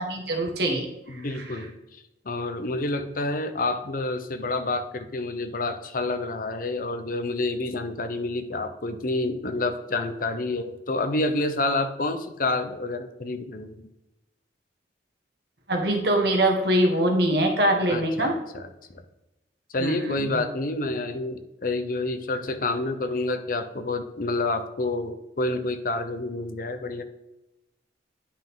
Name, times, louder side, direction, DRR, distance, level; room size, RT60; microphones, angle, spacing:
voice 1, 0.0-1.6 15.7-18.4 19.8-20.4, right 1 dB, 60° right, 3 dB, 1.5 m, -24 dB
voice 2, 1.1-1.7 2.3-13.9 17.9-19.0 19.7-27.0, left 2 dB, 50° left, 9 dB, 0.7 m, -28 dB
10.0 x 5.4 x 3.7 m, 0.91 s
head